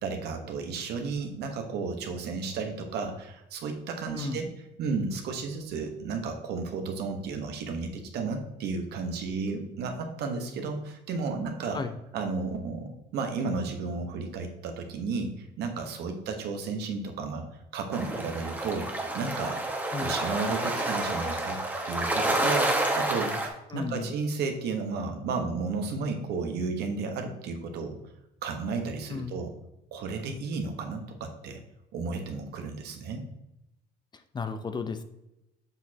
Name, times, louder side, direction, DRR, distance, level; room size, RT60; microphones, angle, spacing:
voice 1, 0.0-4.5 4.8-11.8 12.1-17.5 17.7-18.9 19.1-19.6 20.0-21.6 21.8-23.4 23.7-28.0 28.4-29.5 29.9-31.6 31.9-33.2, right 4 dB, 75° right, 4 dB, 1.3 m, -33 dB
sound 1, 17.9-23.5, right 1 dB, 10° right, 1.2 m, -29 dB
voice 2, 23.7-24.2 29.1-29.4 34.3-35.0, left 4 dB, 25° left, 9 dB, 0.6 m, -33 dB
7.1 x 6.3 x 2.9 m, 0.89 s
cardioid pair, 110°, 17 cm